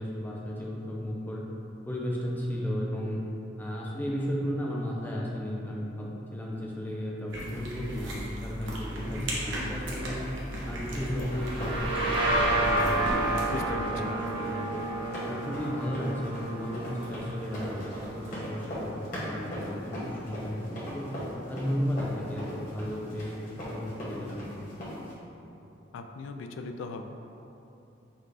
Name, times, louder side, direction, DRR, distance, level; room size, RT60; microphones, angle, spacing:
voice 1, 0.0-1.4 1.9-3.2 3.6-10.3 10.7-13.5 13.9-14.8 15.3-21.1 21.5-23.3 23.6-24.6, equal, 10° left, -3 dB, 0.5 m, -34 dB
sound 1, 7.3-13.6, equal, 75° right, 0.8 m, -36 dB
sound 2, 10.6-25.1, equal, 45° left, 1.3 m, -39 dB
sound 3, 11.3-18.8, right 2 dB, 30° right, 1.0 m, -31 dB
voice 2, 13.5-14.1 25.9-27.0, left 3 dB, 85° left, 6 dB, 0.3 m, -38 dB
4.5 x 2.4 x 4.7 m, 2.8 s
head